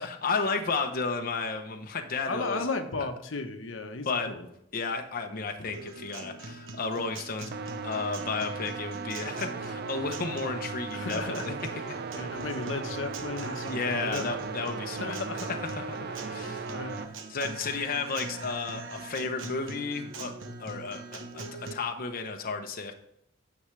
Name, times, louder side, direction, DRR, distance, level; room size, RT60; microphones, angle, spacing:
voice 1, 0.0-2.7 4.1-4.3 4.7-7.5 7.8-12.0 13.7-15.2 15.5-16.7 17.3-20.3 20.6-22.9, left 4 dB, 50° left, 4 dB, 0.8 m, -33 dB
voice 2, 2.3-4.5 5.3-5.5 10.9-11.6 12.1-14.3 15.0-15.6 16.1-17.1, left 3 dB, 85° left, 6 dB, 1.0 m, -35 dB
Guitar, 5.7-21.7, right 3 dB, 80° right, 1.0 m, -42 dB
sound 1, 7.5-17.1, right 4 dB, 55° right, 0.5 m, -37 dB
9.8 x 7.0 x 3.2 m, 0.76 s
head